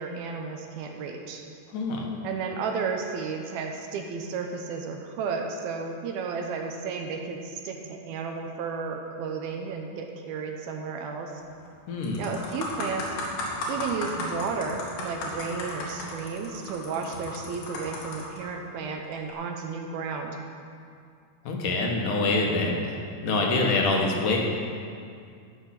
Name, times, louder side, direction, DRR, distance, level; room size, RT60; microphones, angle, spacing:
voice 1, 0.0-1.4 2.2-11.3 12.2-13.1 13.7-20.4, right 5 dB, 75° right, 3 dB, 2.7 m, -33 dB
voice 2, 1.7-2.1 11.9-12.3 21.5-23.0 23.2-24.4, left 2 dB, 65° left, 0 dB, 2.7 m, -25 dB
sound 1, 11.4-11.7 12.0-18.4 19.1-19.3, left 2 dB, 85° left, 4.0 m, -35 dB
13.0 x 8.2 x 5.9 m, 2.3 s
omnidirectional pair, 4.5 m